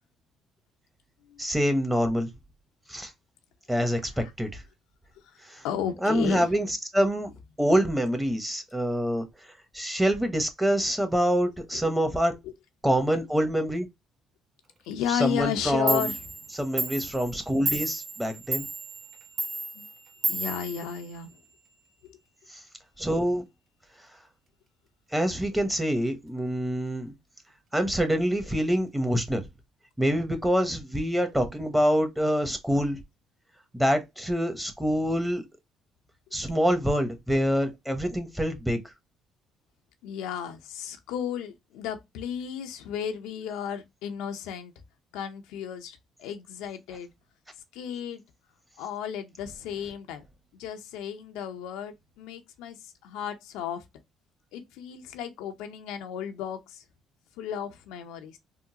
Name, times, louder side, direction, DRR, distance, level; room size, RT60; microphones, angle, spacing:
voice 1, 1.4-2.3 2.9-3.1 3.7-4.6 5.5-5.6 6.0-7.3 7.6-9.2 9.7-12.3 12.8-13.9 15.1-16.1 16.5-18.7 23.0-23.4 25.1-27.1 27.7-29.4 30.0-33.0 33.7-35.4 36.3-38.8, equal, 10° right, 1.0 m, -26 dB
voice 2, 5.6-6.5 10.7-10.8 11.7-11.8 12.4-12.5 14.9-16.3 19.7-19.9 20.3-21.3 22.1-22.2 40.0-44.7 45.1-47.1 47.7-48.2 48.8-50.2 50.5-53.8 54.5-56.8 57.4-58.4, left 9 dB, 80° left, 0.5 m, -34 dB
Clock, 15.6-15.7 15.9-21.5, right 2 dB, 55° right, 0.8 m, -33 dB
3.7 x 2.1 x 2.8 m
supercardioid pair, 65°, 0 cm